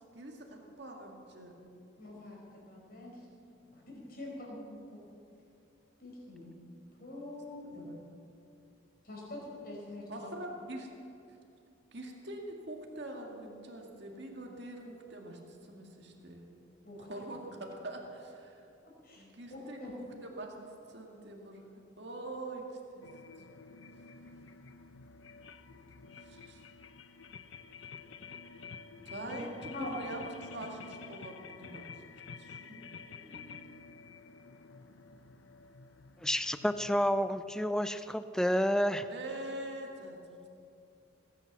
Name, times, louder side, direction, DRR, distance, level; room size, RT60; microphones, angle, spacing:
voice 1, 0.1-1.6 7.6-8.0 10.1-10.9 11.3-11.4 11.9-16.4 17.0-18.6 19.1-22.6 22.9-23.0 26.2-26.6 29.0-32.1 32.4-32.6 39.1-40.5, right 1 dB, 55° right, 1 dB, 2.1 m, -44 dB
voice 2, 2.0-3.3 3.7-4.6 4.9-5.0 6.0-6.5 7.0-7.9 9.0-10.3 16.8-17.1 19.0-19.9 29.1-29.4 29.7-29.9 32.7-32.8 33.2-33.5, left 2 dB, 45° left, -3 dB, 4.9 m, -45 dB
sound 1, 23.0-37.0, left 5 dB, 70° left, 0.7 m, -50 dB
voice 3, 36.2-39.1, equal, 5° left, 12 dB, 0.3 m, -30 dB
19.5 x 10.0 x 7.4 m, 2.6 s
head